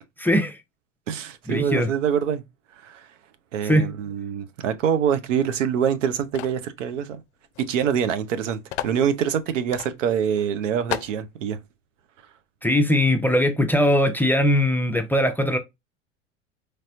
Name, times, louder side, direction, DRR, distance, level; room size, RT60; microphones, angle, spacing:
voice 1, 0.2-0.5 1.5-1.9 3.6-3.9 12.6-15.6, left 1 dB, 5° left, 0.5 m, -20 dB
voice 2, 1.1-2.4 2.8-3.1 3.5-7.2 7.6-11.6, right 8 dB, 70° right, 0.7 m, -25 dB
sound 1, 6.3-6.6 7.5-7.7 7.9-8.0 8.7-9.0 9.7-9.9 10.4-10.5 10.9-11.2, left 12 dB, 60° left, 0.5 m, -32 dB
4.1 x 3.3 x 2.5 m
figure-of-eight pair, 75°, 39 cm